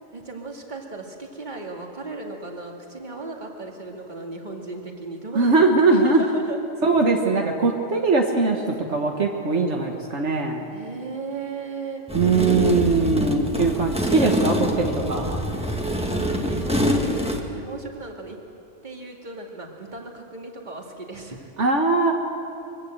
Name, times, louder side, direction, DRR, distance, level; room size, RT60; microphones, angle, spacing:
voice 1, 0.1-6.6 10.7-12.0 16.0-18.4 18.8-21.5, right 3 dB, 40° right, 1 dB, 2.4 m, -36 dB
voice 2, 5.3-6.2 6.8-10.6 12.1-15.4 21.6-22.1, right 3 dB, 75° right, 2 dB, 1.7 m, -21 dB
sound 1, 12.1-17.4, equal, 5° right, 1.6 m, -25 dB
23.5 x 16.5 x 7.9 m, 2.7 s
omnidirectional pair, 1.2 m